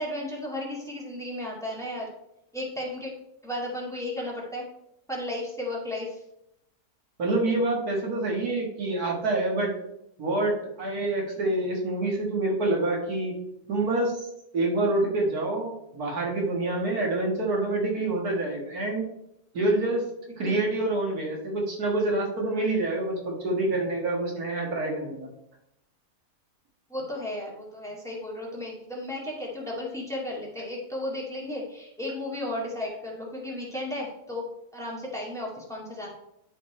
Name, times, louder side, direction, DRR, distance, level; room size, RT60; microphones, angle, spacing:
voice 1, 0.0-2.1 2.5-3.1 3.4-4.7 5.1-6.2 20.5-20.6 26.9-34.4 34.7-36.1, left 1 dB, ahead, -4 dB, 2.0 m, -34 dB
voice 2, 7.2-9.7 10.2-13.4 13.7-14.3 14.5-19.1 19.5-20.0 20.4-25.3, right 2 dB, 80° right, -1 dB, 2.2 m, -27 dB
11.0 x 4.3 x 4.3 m, 0.81 s
omnidirectional pair, 1.6 m